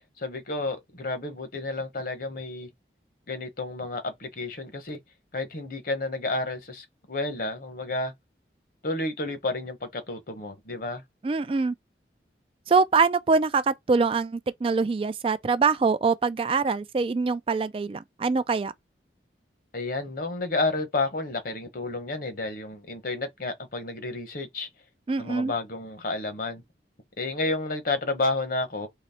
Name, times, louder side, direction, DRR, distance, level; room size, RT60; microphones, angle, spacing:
voice 1, 0.2-2.7 3.3-5.0 5.3-8.1 8.8-11.0 19.7-24.7 25.2-26.6 27.2-28.9, left 2 dB, 50° left, 1.0 m, -31 dB
voice 2, 11.2-11.7 12.7-18.7 25.1-25.5, right 4 dB, 30° right, 0.3 m, -24 dB
3.9 x 3.0 x 4.2 m
head